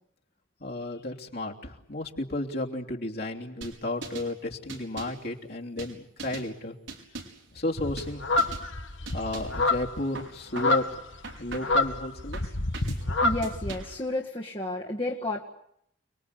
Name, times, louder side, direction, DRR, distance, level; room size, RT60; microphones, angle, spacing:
voice 1, 0.6-6.7 7.5-8.2 9.1-10.8 11.4-12.4, left 1 dB, 55° left, -1 dB, 3.2 m, -33 dB
sound 1, 3.6-4.3 4.7-5.2 5.8-6.5 6.9-7.5 8.0-8.1 8.4-8.7 9.1-9.6 10.1-10.9 11.2-11.8 12.3-13.0 13.4-14.0, right 3 dB, 85° right, 5.5 m, -41 dB
sound 2, 7.8-13.9, left 2 dB, 80° left, 2.0 m, -28 dB
voice 2, 13.2-15.4, left 2 dB, 25° left, -2 dB, 1.9 m, -31 dB
29.5 x 21.5 x 8.5 m, 0.74 s
head